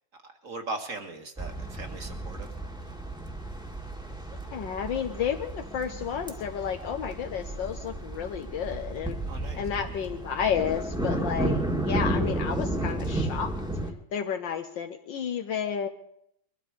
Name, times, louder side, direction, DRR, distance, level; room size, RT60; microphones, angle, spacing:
voice 1, 0.3-2.5 9.3-9.6, right 2 dB, 45° right, 5 dB, 2.0 m, -38 dB
sound 1, 1.4-13.9, right 1 dB, ahead, 1.6 m, -32 dB
voice 2, 4.5-9.2 9.6-13.5 14.1-15.9, left 8 dB, 70° left, 5 dB, 1.7 m, -31 dB
22.0 x 12.5 x 5.0 m, 0.73 s
omnidirectional pair, 2.1 m